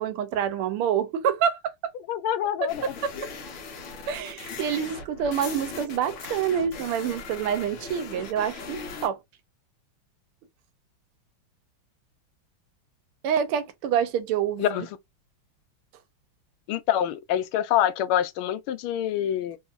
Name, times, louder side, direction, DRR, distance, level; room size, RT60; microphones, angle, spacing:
voice 1, 0.0-1.7 2.6-3.1 4.1-9.2 13.2-14.9, right 8 dB, 90° right, 1.6 m, -27 dB
voice 2, 2.1-2.9 14.6-14.9 16.7-19.6, left 11 dB, 85° left, 1.5 m, -26 dB
sound 1, 2.7-9.1, left 4 dB, 65° left, 1.5 m, -39 dB
3.9 x 2.7 x 2.4 m
omnidirectional pair, 2.4 m